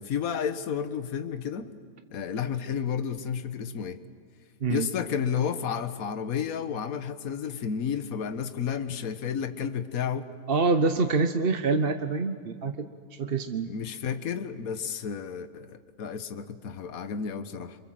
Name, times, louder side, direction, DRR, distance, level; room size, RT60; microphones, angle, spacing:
voice 1, 0.0-1.8 2.1-4.0 4.7-10.3 13.6-17.8, left 7 dB, 60° left, 10 dB, 1.6 m, -31 dB
voice 2, 10.5-12.9 13.2-13.7, right 4 dB, 40° right, 7 dB, 1.1 m, -26 dB
28.0 x 27.0 x 7.7 m, 2.2 s
omnidirectional pair, 1.7 m